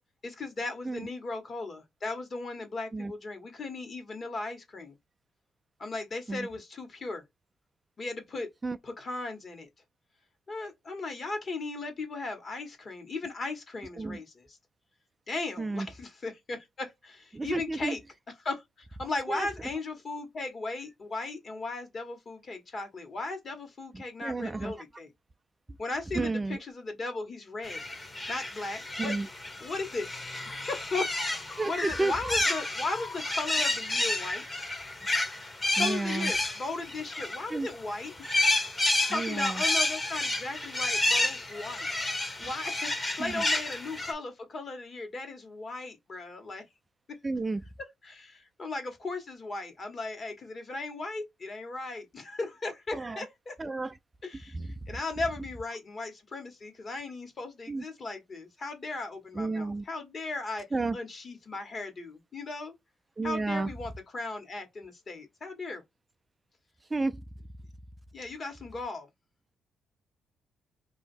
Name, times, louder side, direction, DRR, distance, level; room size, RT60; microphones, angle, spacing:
voice 1, 0.2-4.9 5.8-7.2 8.0-8.5 8.8-9.7 10.5-14.2 15.3-18.0 18.4-18.6 19.0-25.1 25.8-27.8 28.3-29.1 29.6-30.2 30.7-31.1 31.6-34.4 35.8-38.1 39.1-42.1 42.4-46.6 48.0-48.3 48.6-53.5 54.2-54.5 54.9-60.6 60.9-62.7 63.2-65.8 68.1-69.1, left 3 dB, 40° left, 1.4 m, -36 dB
voice 2, 17.3-18.0 19.3-19.5 24.2-24.8 26.1-26.6 29.0-29.3 31.6-32.1 35.8-36.3 37.5-37.7 39.1-39.6 42.4-42.5 43.2-43.4 47.2-47.6 52.9-53.2 53.6-53.9 54.5-54.7 57.7-57.8 59.3-59.8 60.7-61.0 63.2-63.7 66.9-67.2, right 3 dB, 20° right, 0.3 m, -31 dB
sound 1, 27.6-37.7 38.1-44.1, left 2 dB, 20° left, 1.0 m, -30 dB
3.0 x 2.7 x 4.4 m
cardioid pair, 90°, 0 cm